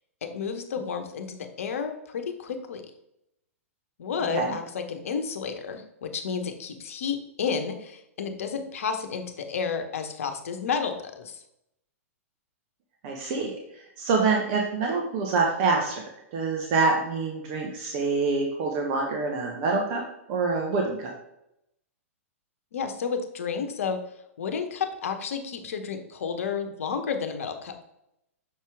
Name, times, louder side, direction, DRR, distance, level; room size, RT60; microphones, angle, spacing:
voice 1, 0.2-2.8 4.0-11.4 22.7-24.0 24.4-27.8, left 6 dB, 65° left, 7 dB, 1.0 m, -31 dB
voice 2, 13.0-20.0 20.3-21.1, right 4 dB, 45° right, 0 dB, 1.1 m, -26 dB
6.6 x 4.5 x 3.5 m, 0.81 s
figure-of-eight pair, 110°, 8 cm